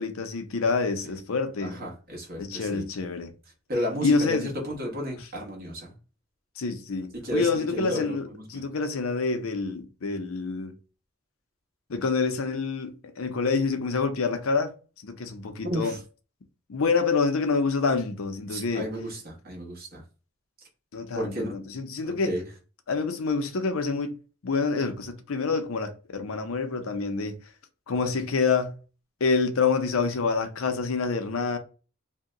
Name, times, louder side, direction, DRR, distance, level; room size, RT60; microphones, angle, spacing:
voice 1, 0.0-1.8 2.4-3.3 4.0-4.5 6.6-8.2 8.5-10.7 11.9-14.7 15.0-16.0 16.7-18.9 20.9-22.3 22.9-24.1 24.4-27.3 27.9-28.7 29.2-31.6, left 4 dB, 85° left, 0.6 m, -27 dB
voice 2, 1.6-2.9 3.7-5.9 7.2-8.6 15.6-16.0 18.5-20.0 21.1-21.5 22.0-22.4, equal, 45° right, 1.1 m, -33 dB
2.7 x 2.2 x 3.7 m
head